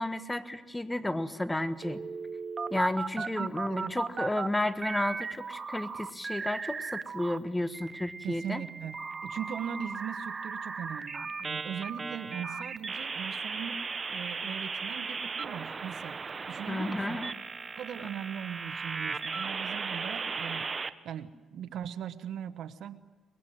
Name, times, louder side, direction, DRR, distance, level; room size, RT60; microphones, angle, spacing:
voice 1, 0.0-2.0 2.7-8.6 16.7-17.3, left 1 dB, 10° left, 11 dB, 1.3 m, -32 dB
sound 1, 1.8-4.5 4.8-7.4 7.7-20.9, right 4 dB, 35° right, 0.9 m, -37 dB
voice 2, 3.2-4.0 8.2-13.8 14.1-16.2 16.5-17.2 17.8-20.7 21.0-23.0, right 8 dB, 75° right, 12 dB, 1.1 m, -40 dB
23.5 x 21.0 x 7.8 m, 1.3 s
cardioid pair, 90°, 0 cm